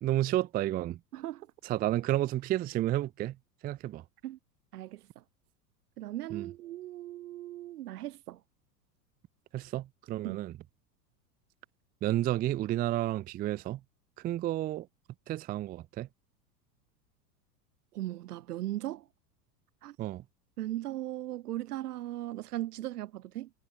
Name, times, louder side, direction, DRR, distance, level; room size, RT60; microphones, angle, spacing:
voice 1, 0.0-1.0 1.6-3.4 3.6-4.0 6.3-6.5 9.5-10.5 12.0-13.8 14.2-14.9 15.3-16.1 20.0-20.2, right 14 dB, 20° right, 0.4 m, -31 dB
voice 2, 1.1-1.5 4.2-4.4 4.7-5.2 6.0-8.4 10.2-10.4 17.9-19.1 19.8-20.0 20.6-23.5, right 14 dB, 70° right, 1.1 m, -38 dB
hypercardioid pair, 90°, 47 cm